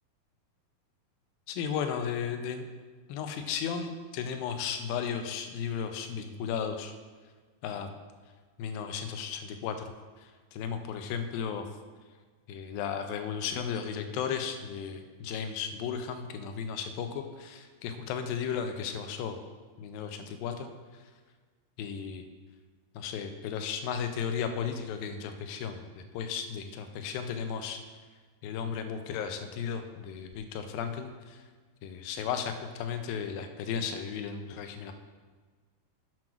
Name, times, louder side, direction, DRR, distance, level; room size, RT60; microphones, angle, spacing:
voice 1, 1.5-2.7 3.1-6.9 7.6-8.0 8.6-9.9 10.2-11.7 12.5-19.4 19.8-21.0 21.8-22.2 22.9-27.8 28.4-31.4 31.8-34.9, left 7 dB, 80° left, 7 dB, 2.3 m, -35 dB
7.7 x 5.9 x 6.0 m, 1.4 s
omnidirectional pair, 4.5 m